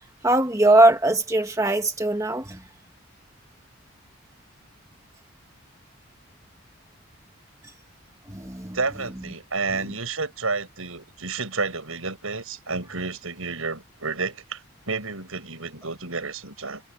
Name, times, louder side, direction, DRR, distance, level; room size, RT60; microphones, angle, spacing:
voice 1, 0.2-2.6 8.3-8.8 9.7-9.9, right 2 dB, 15° right, 1.5 m, -20 dB
voice 2, 8.7-16.8, right 4 dB, 85° right, 6.7 m, -30 dB
head